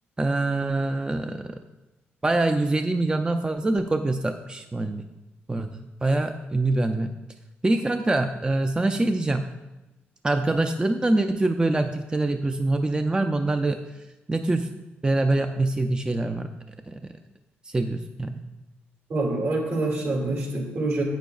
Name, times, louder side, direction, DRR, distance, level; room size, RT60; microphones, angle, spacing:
voice 1, 0.2-1.6 2.2-5.1 5.5-7.1 7.6-9.5 10.2-14.0 14.3-14.7 15.0-16.5 16.9-17.0 17.6-18.4, right 2 dB, 20° right, 6 dB, 0.5 m, -24 dB
voice 2, 19.1-21.0, right 2 dB, 65° right, -1 dB, 2.6 m, -26 dB
9.0 x 8.3 x 2.4 m, 1.0 s
supercardioid pair, 60°, 5 cm